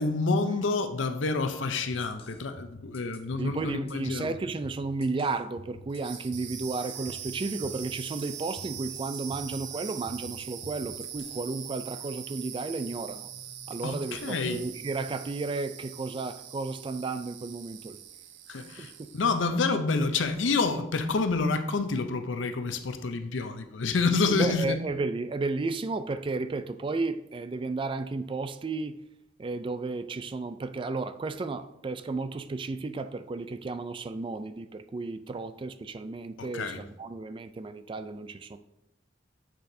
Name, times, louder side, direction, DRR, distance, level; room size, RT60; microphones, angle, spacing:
voice 1, 0.0-4.4 13.8-14.7 18.5-24.8 36.4-36.8, left 3 dB, 80° left, 0.6 m, -28 dB
sound 1, 1.9-11.4, left 2 dB, 30° left, 0.6 m, -49 dB
voice 2, 3.4-13.3 13.7-18.0 18.6-19.1 23.9-24.1 24.4-29.0 29.4-38.6, right 3 dB, 25° right, 0.3 m, -33 dB
sound 2, 5.9-19.4, right 10 dB, 70° right, 0.6 m, -42 dB
7.8 x 6.5 x 2.7 m
head